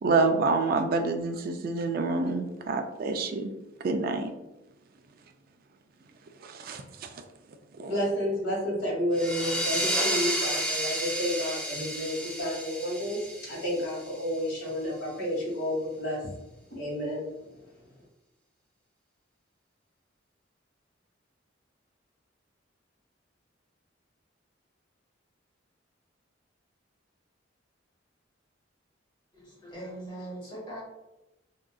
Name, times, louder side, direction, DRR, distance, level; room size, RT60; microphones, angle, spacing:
voice 1, 0.0-3.5 3.8-4.3 6.4-7.1 7.8-7.9, right 3 dB, 50° right, 6 dB, 0.3 m, -27 dB
voice 2, 7.8-16.3 16.7-17.2, equal, 80° left, -4 dB, 1.5 m, -31 dB
sound 1, 9.1-14.5, equal, 5° left, 0.5 m, -31 dB
voice 3, 29.3-30.8, right 1 dB, 25° left, -5 dB, 1.1 m, -41 dB
3.7 x 2.4 x 2.3 m, 0.98 s
head